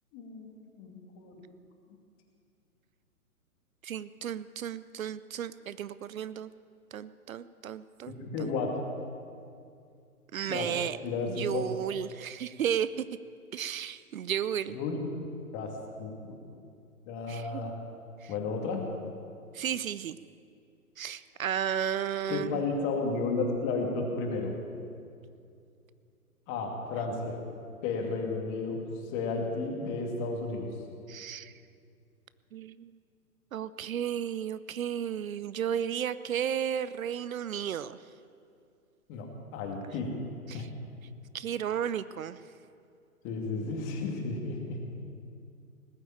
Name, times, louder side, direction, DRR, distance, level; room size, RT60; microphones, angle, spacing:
voice 1, 0.1-1.4 8.1-8.8 10.5-10.7 11.0-11.6 14.7-15.2 15.5-15.7 16.0-16.4 17.0-17.7 18.3-18.9 22.3-24.5 26.5-27.4 27.8-28.8 29.1-30.7 39.1-40.1 40.5-40.7 43.2-44.8, left 3 dB, 25° left, 1 dB, 2.5 m, -33 dB
voice 2, 3.8-6.5 6.9-8.1 8.4-8.5 10.3-11.0 11.3-13.0 13.5-14.8 17.3-17.6 18.2-18.3 19.5-20.2 21.0-22.7 31.1-31.5 32.5-32.9 33.5-38.0 40.5-40.7 41.3-42.4, right 9 dB, 65° right, 16 dB, 0.6 m, -33 dB
19.5 x 7.9 x 8.9 m, 2.4 s
figure-of-eight pair, 130°, 45 cm